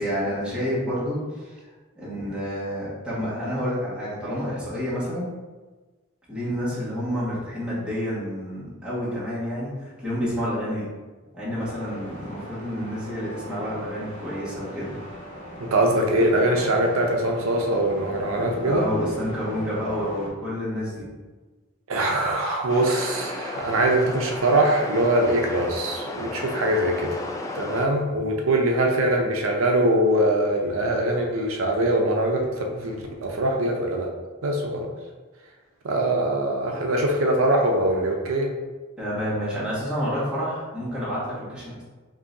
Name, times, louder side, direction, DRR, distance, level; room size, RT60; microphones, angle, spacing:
voice 1, 0.0-1.5 2.0-5.3 6.3-10.9 11.3-14.9 18.6-21.1 39.0-41.8, equal, 5° right, -10 dB, 1.5 m, -29 dB
sound 1, 11.6-20.3, equal, 30° left, 1.4 m, -40 dB
voice 2, 15.6-18.9 21.9-27.2 27.5-34.1 34.4-34.9 35.8-38.5, right 1 dB, 85° right, 1 dB, 0.6 m, -22 dB
sound 2, 22.7-27.9, left 2 dB, 15° left, 0.3 m, -33 dB
5.4 x 2.7 x 2.6 m, 1.3 s
head